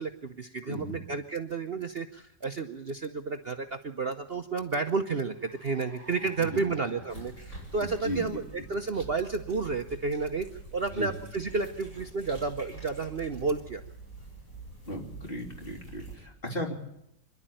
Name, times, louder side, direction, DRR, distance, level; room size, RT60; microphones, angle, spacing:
voice 1, 0.0-7.3 7.7-10.5 10.7-13.8, right 4 dB, 50° right, 6 dB, 0.8 m, -31 dB
voice 2, 0.7-1.0 6.4-6.6 7.8-8.4 9.0-9.1 10.9-11.1 14.9-16.7, equal, 30° left, 1 dB, 3.2 m, -36 dB
Car, 4.2-12.0, left 1 dB, 70° left, 8.1 m, -56 dB
sound 1, 7.1-16.1, right 2 dB, 45° left, 7.3 m, -46 dB
25.5 x 11.5 x 9.0 m, 0.81 s
omnidirectional pair, 2.0 m